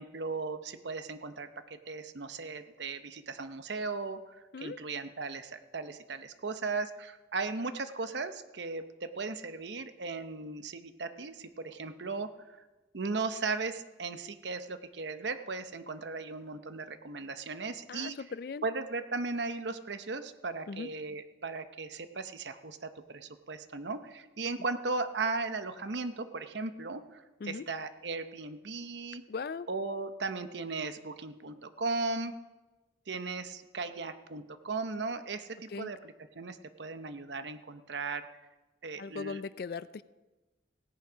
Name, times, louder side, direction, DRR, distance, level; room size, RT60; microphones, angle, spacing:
voice 1, 0.0-12.3 12.9-18.2 18.6-29.2 29.7-32.3 33.1-38.3 38.8-39.4, right 3 dB, 75° right, 10 dB, 0.8 m, -37 dB
voice 2, 17.9-18.7 20.7-20.9 27.4-27.6 29.3-29.7 35.7-35.9 39.0-40.0, left 4 dB, 55° left, 16 dB, 0.4 m, -39 dB
17.0 x 10.5 x 5.1 m, 1.2 s
head